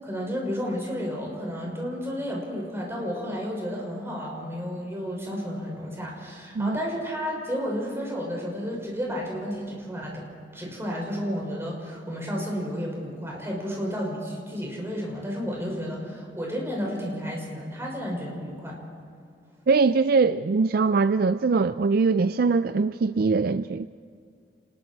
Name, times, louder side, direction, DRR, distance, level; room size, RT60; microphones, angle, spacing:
voice 1, 0.0-10.2 10.5-18.8, equal, 15° right, -2 dB, 6.1 m, -32 dB
voice 2, 19.7-23.9, right 4 dB, 55° right, 13 dB, 0.4 m, -22 dB
29.0 x 21.0 x 4.6 m, 2.4 s
head